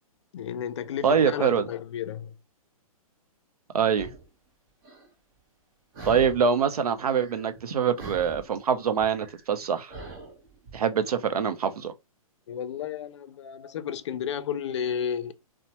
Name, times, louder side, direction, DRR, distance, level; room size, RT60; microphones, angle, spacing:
voice 1, 0.3-2.3 12.5-15.3, left 8 dB, 50° left, 0.4 m, -32 dB
voice 2, 1.0-1.6 3.7-4.1 6.0-9.9 10.7-11.9, right 7 dB, 85° right, 0.5 m, -24 dB
sound 1, 4.0-4.3 4.8-5.1 5.9-6.6 6.9-7.7 8.0-10.8, right 4 dB, 35° right, 0.9 m, -43 dB
2.8 x 2.1 x 2.8 m
hypercardioid pair, 140°, 19 cm